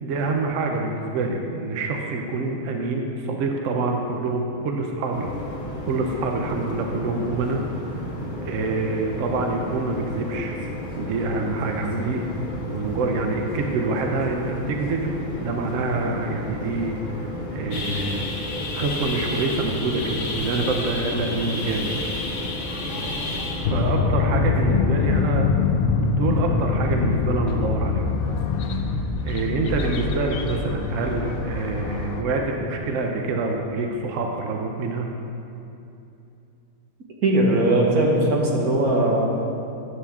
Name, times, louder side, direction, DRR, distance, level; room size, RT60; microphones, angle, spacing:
voice 1, 0.0-5.3 5.9-7.6 8.4-10.5 11.0-12.2 12.7-18.3 18.7-21.9 23.7-28.1 28.7-35.1, right 3 dB, 65° right, 2 dB, 1.0 m, -26 dB
sound 1, 5.1-23.9, left 1 dB, 35° left, 1.2 m, -33 dB
sound 2, 17.7-23.7, left 2 dB, 60° left, 1.1 m, -31 dB
sound 3, 23.6-32.2, left 4 dB, 75° left, 0.5 m, -24 dB
voice 2, 37.2-39.2, right 1 dB, 85° right, -2 dB, 1.8 m, -19 dB
9.8 x 7.1 x 3.6 m, 2.7 s
omnidirectional pair, 1.5 m